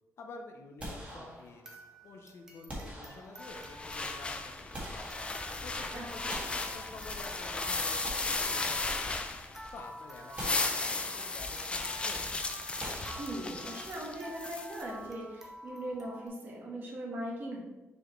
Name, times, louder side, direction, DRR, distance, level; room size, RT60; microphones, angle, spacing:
voice 1, 0.2-5.2 5.6-9.3 9.7-12.3, left 3 dB, 60° left, 4 dB, 0.7 m, -49 dB
sound 1, 0.8-1.8 2.7-3.7 4.4-5.7 6.3-7.4 7.8-9.3 9.7-9.8 10.4-11.4 12.8-13.9, right 1 dB, 25° right, 1.7 m, -45 dB
sound 2, 1.1-16.3, right 1 dB, 10° right, 0.8 m, -50 dB
sound 3, 3.4-9.8 10.2-14.8, left 3 dB, 20° left, 0.5 m, -35 dB
voice 2, 5.9-6.4 13.2-17.6, right 1 dB, 45° right, -3 dB, 1.6 m, -40 dB
6.3 x 5.0 x 3.2 m, 1.1 s
wide cardioid pair, 160°, 5 cm